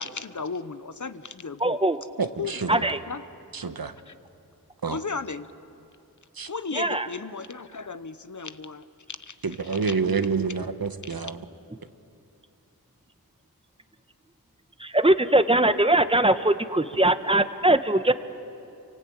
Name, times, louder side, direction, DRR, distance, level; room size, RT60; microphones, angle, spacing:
voice 1, 0.0-1.8 2.4-3.2 4.1-4.2 4.9-5.5 6.5-8.9 9.2-9.4 9.6-9.8 11.0-11.2, left 4 dB, 50° left, 12 dB, 1.0 m, -35 dB
voice 2, 1.6-2.0 2.7-3.0 6.8-7.1 14.8-18.1, right 1 dB, 15° right, 10 dB, 1.2 m, -21 dB
voice 3, 2.2-2.7 3.5-3.9 4.8-5.0 6.4-6.5 9.4-11.4, right 5 dB, 70° right, 9 dB, 1.3 m, -28 dB
27.5 x 24.0 x 8.7 m, 2.6 s
wide cardioid pair, 55°, 37 cm